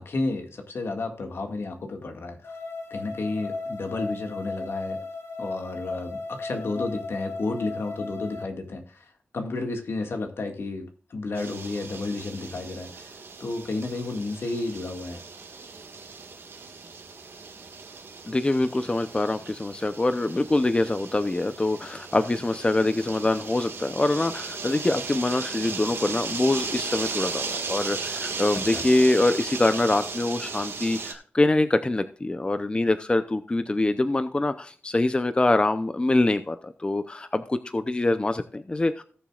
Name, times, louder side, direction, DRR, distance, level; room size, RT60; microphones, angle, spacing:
voice 1, 0.0-2.5 2.9-5.0 5.4-13.2 13.4-15.2 28.5-28.8, left 3 dB, 70° left, 4 dB, 1.9 m, -32 dB
sound 1, 2.4-8.4, left 3 dB, 90° left, 1.5 m, -35 dB
sound 2, 11.4-31.1, right 4 dB, 75° right, 1.7 m, -36 dB
voice 2, 18.3-39.0, left 2 dB, 25° left, 10 dB, 0.6 m, -24 dB
18.0 x 7.3 x 2.4 m, 0.43 s
wide cardioid pair, 120°, 4 cm